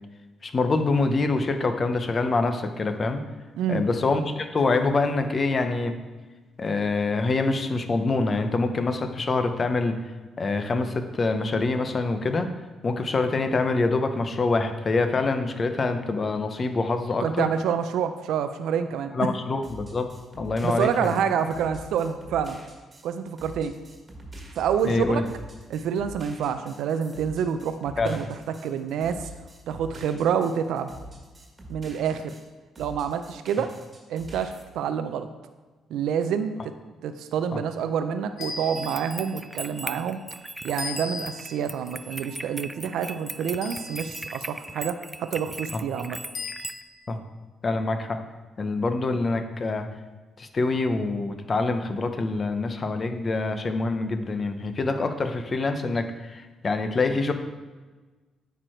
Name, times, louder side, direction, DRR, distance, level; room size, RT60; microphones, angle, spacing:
voice 1, 0.4-3.2 3.7-5.9 6.6-10.0 10.4-12.5 12.8-17.5 19.1-20.1 20.4-21.2 24.9-25.3 28.0-28.2 37.5-37.6 45.7-45.8 47.1-47.2 47.6-48.2 48.6-49.8 50.4-57.3, left 3 dB, 35° left, 8 dB, 0.8 m, -25 dB
voice 2, 17.2-19.3 20.6-22.6 23.0-23.7 24.6-25.2 25.7-28.2 28.6-29.3 29.7-30.9 31.7-32.3 32.8-33.7 34.1-35.3 35.9-36.5 37.0-40.2 40.6-46.2, right 7 dB, 85° right, 9 dB, 0.4 m, -27 dB
sound 1, 19.6-32.5 32.7-34.6, right 1 dB, 25° right, 1.7 m, -45 dB
sound 2, 38.4-39.3 40.8-41.6 43.6-44.3 46.3-47.0, left 3 dB, 70° left, 1.5 m, -37 dB
sound 3, 38.8-46.8, right 1 dB, 10° right, 0.3 m, -39 dB
9.2 x 4.6 x 4.5 m, 1.3 s
cardioid pair, 90°, 0 cm